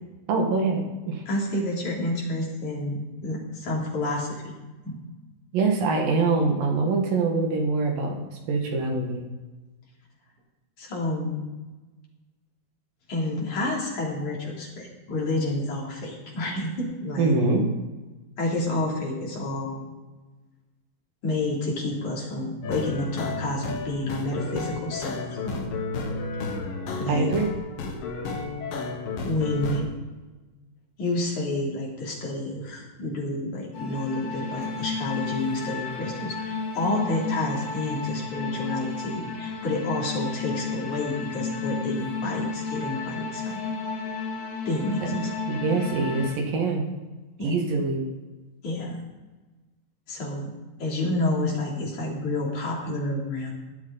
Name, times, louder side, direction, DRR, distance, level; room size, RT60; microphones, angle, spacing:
voice 1, 0.3-1.2 5.5-9.3 17.2-17.7 27.1-27.5 45.1-46.9 47.4-48.1, right 3 dB, 70° right, 2 dB, 3.4 m, -24 dB
voice 2, 1.3-5.0 10.8-11.4 13.1-17.4 18.4-19.9 21.2-25.2 25.4-25.7 27.0-27.3 29.2-29.9 31.0-43.6 44.7-45.3 45.8-46.0 47.4-47.5 48.6-49.0 50.1-50.5 50.8-53.5, left 2 dB, 55° left, -3 dB, 4.4 m, -29 dB
sound 1, 22.6-29.8, left 3 dB, 70° left, 3.2 m, -32 dB
sound 2, 33.7-46.3, left 4 dB, 85° left, 4.6 m, -32 dB
17.5 x 11.5 x 4.1 m, 1.2 s
omnidirectional pair, 4.3 m